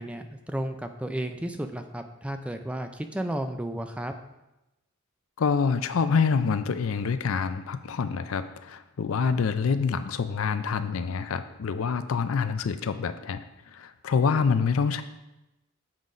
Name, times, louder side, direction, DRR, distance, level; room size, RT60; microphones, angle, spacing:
voice 1, 0.0-4.1, right 1 dB, 5° right, 7 dB, 0.3 m, -33 dB
voice 2, 5.4-15.0, left 5 dB, 70° left, 11 dB, 0.4 m, -26 dB
7.4 x 3.9 x 4.9 m, 0.96 s
head